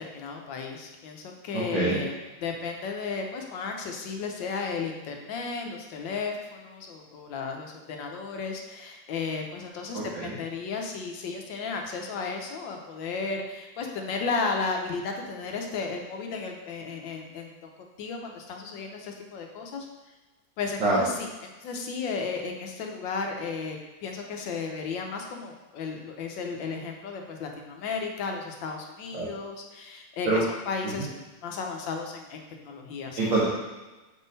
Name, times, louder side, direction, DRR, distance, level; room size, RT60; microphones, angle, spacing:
voice 1, 0.0-2.1 2.4-19.9 20.6-21.3 21.6-31.1 31.4-33.2, left 4 dB, 90° left, 2 dB, 1.5 m, -34 dB
voice 2, 1.5-2.0 9.9-10.4 20.8-21.0 29.1-29.3 30.3-30.4 30.8-31.1 33.2-33.5, right 2 dB, 90° right, -8 dB, 1.9 m, -26 dB
6.9 x 3.7 x 4.0 m, 1.1 s
omnidirectional pair, 2.0 m